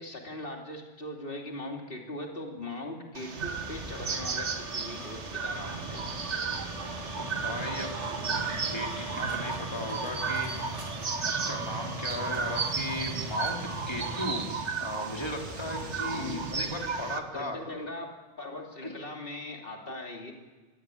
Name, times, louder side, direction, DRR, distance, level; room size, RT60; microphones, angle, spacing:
voice 1, 0.0-6.2 16.1-16.5 17.3-20.3, left 1 dB, 50° left, 2 dB, 3.1 m, -40 dB
sound 1, 3.1-17.2, right 5 dB, 80° right, 1.7 m, -34 dB
sound 2, 3.4-17.2, right 1 dB, 30° right, 2.5 m, -40 dB
voice 2, 7.2-7.9 8.2-10.5 11.3-14.4 14.8-17.6 18.8-18.9, left 1 dB, 25° left, 1 dB, 3.1 m, -36 dB
24.0 x 20.0 x 7.8 m, 1.3 s
omnidirectional pair, 1.2 m